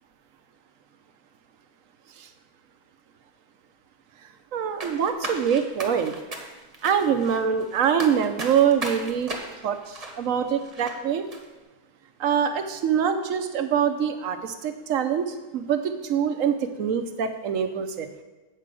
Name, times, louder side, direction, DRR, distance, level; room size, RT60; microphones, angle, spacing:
voice 1, 4.5-6.1 6.8-9.3 9.6-11.2 12.2-18.2, right 8 dB, 65° right, 8 dB, 1.1 m, -24 dB
sound 1, 4.8-11.0 11.3-11.4, right 2 dB, 30° right, 1.1 m, -36 dB
8.4 x 4.9 x 7.6 m, 1.2 s
omnidirectional pair, 1.5 m